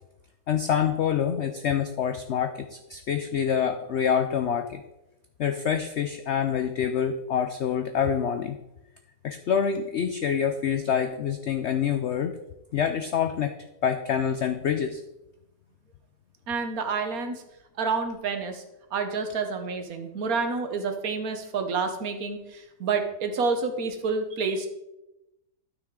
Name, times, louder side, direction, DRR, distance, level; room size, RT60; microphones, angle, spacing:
voice 1, 0.5-4.8 5.4-8.6 9.2-12.4 12.7-13.6 13.8-15.0, left 8 dB, 65° left, 7 dB, 0.6 m, -26 dB
voice 2, 16.5-17.4 17.8-18.6 18.9-24.7, right 4 dB, 60° right, 7 dB, 1.5 m, -29 dB
12.5 x 6.0 x 3.7 m, 0.92 s
omnidirectional pair, 1.8 m